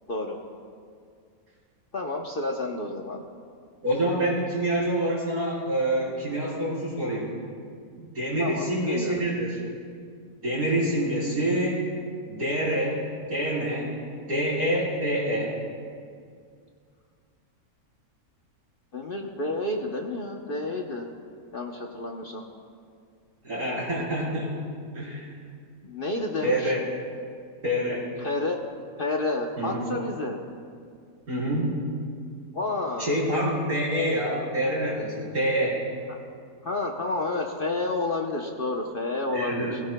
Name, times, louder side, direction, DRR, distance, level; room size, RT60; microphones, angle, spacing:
voice 1, 1.9-3.2 8.4-9.2 18.9-21.1 21.5-22.4 25.8-26.7 28.2-28.6 29.0-30.4 32.5-33.1 36.1-36.2 36.6-39.8, left 2 dB, 45° left, 1 dB, 0.9 m, -30 dB
voice 2, 3.8-7.3 8.0-9.6 10.4-11.9 12.2-13.9 14.3-15.6 23.4-24.5 24.9-25.3 26.4-26.8 27.6-28.1 29.6-29.8 31.3-31.7 33.0-35.8 39.3-39.8, right 1 dB, 75° right, -5 dB, 4.0 m, -26 dB
22.0 x 16.0 x 2.2 m, 2.2 s
omnidirectional pair, 1.6 m